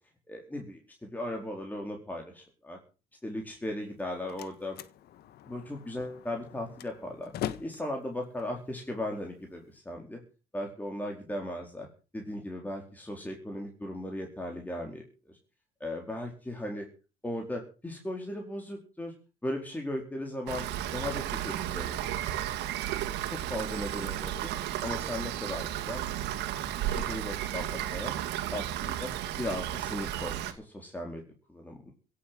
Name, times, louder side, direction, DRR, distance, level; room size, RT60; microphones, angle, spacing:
voice 1, 0.3-2.8 3.2-4.8 5.5-7.3 7.6-10.2 10.5-11.9 12.1-15.4 15.8-16.8 17.2-19.1 19.4-20.7 20.9-22.4 23.3-24.5 24.8-26.0 26.8-28.1 28.5-29.1 29.4-31.2 31.5-31.9, left 1 dB, 10° left, 2 dB, 4.4 m, -37 dB
Slam, 3.8-9.8, left 11 dB, 70° left, 1.6 m, -43 dB
Rain, 20.5-30.5, right 12 dB, 85° right, 2.4 m, -33 dB
16.5 x 8.6 x 7.9 m, 0.36 s
cardioid pair, 110°, 17 cm